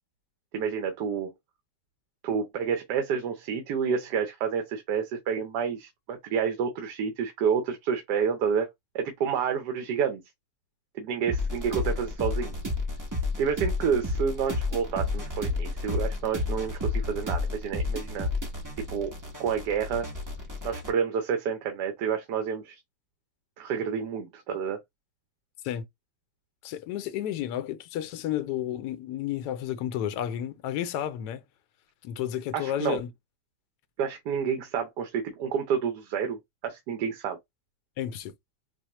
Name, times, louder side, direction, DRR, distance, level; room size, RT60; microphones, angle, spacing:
voice 1, 0.5-1.3 2.2-8.7 8.9-10.2 10.9-12.5 13.4-18.3 18.9-19.1 19.4-20.1 20.6-22.8 23.6-24.8 32.5-33.0 34.0-37.4, right 7 dB, 75° right, 1.3 m, -29 dB
sound 1, 11.3-20.9, left 2 dB, 20° right, 0.5 m, -31 dB
voice 2, 26.6-31.4 32.0-33.1 38.0-38.3, left 11 dB, 75° left, 1.1 m, -32 dB
4.8 x 2.0 x 2.8 m
omnidirectional pair, 1.8 m